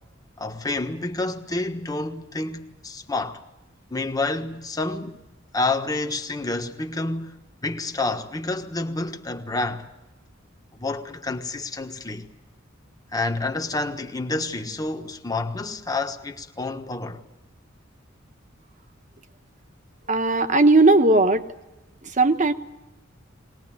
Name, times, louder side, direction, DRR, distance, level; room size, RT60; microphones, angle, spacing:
voice 1, 0.4-3.4 3.9-5.2 5.5-9.9 10.7-12.3 13.1-17.2, left 2 dB, 20° left, 1.4 m, -29 dB
voice 2, 20.1-21.4 22.2-22.5, right 2 dB, 40° right, 1.3 m, -17 dB
21.5 x 19.5 x 9.1 m
head